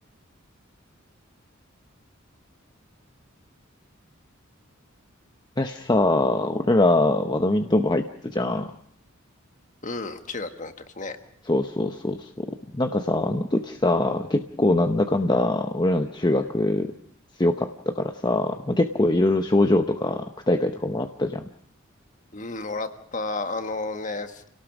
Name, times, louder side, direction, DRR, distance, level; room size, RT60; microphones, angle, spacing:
voice 1, 5.6-8.7 11.5-12.5 12.7-16.9 17.4-21.4, left 2 dB, 20° left, 6 dB, 0.8 m, -23 dB
voice 2, 9.8-11.2 22.3-24.4, left 3 dB, 40° left, 8 dB, 1.5 m, -32 dB
29.5 x 18.0 x 6.1 m, 0.64 s
head